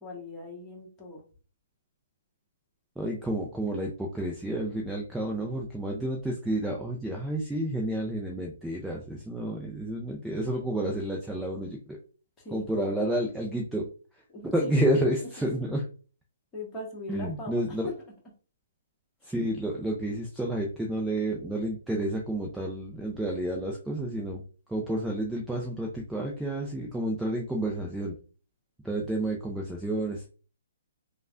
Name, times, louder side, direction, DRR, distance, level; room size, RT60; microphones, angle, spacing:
voice 1, 0.0-1.2 12.4-13.1 14.3-14.7 15.2-15.3 16.5-17.8, left 2 dB, 15° left, -3 dB, 1.2 m, -41 dB
voice 2, 3.0-11.8 12.5-13.9 14.4-15.8 17.1-17.9 19.2-24.4 24.7-28.1 28.8-30.3, right 1 dB, 5° right, -1 dB, 0.4 m, -30 dB
3.2 x 2.2 x 2.4 m, 0.37 s
hypercardioid pair, 145°, 0 cm